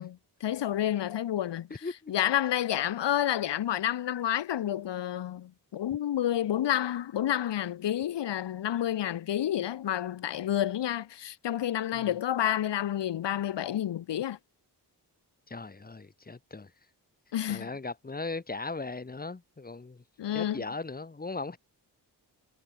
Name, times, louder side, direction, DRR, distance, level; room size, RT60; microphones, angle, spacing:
voice 1, 0.0-14.4 17.3-17.7 20.2-20.6, left 11 dB, 85° left, 0.9 m, -30 dB
voice 2, 1.8-2.1 11.9-12.1 15.5-16.7 17.5-20.0 20.3-21.6, left 3 dB, 20° left, 1.2 m, -38 dB
wide cardioid pair, 125°, 41 cm